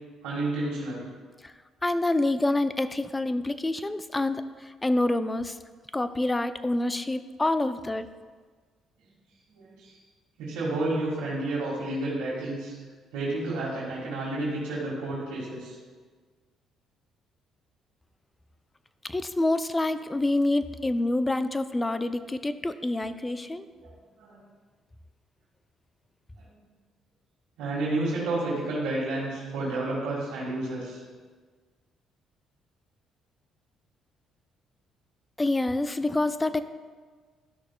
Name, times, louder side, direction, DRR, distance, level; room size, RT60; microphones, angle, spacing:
voice 1, 0.2-1.1 9.6-10.0 10.4-12.8 13.1-15.8 23.8-23.9 24.2-24.4 27.6-31.0, right 2 dB, 85° right, -6 dB, 1.8 m, -30 dB
voice 2, 1.8-5.6 5.9-8.1 19.0-23.7 35.4-36.6, left 2 dB, 15° left, 11 dB, 0.4 m, -27 dB
12.5 x 6.4 x 2.3 m, 1.5 s
cardioid pair, 85°, 0 cm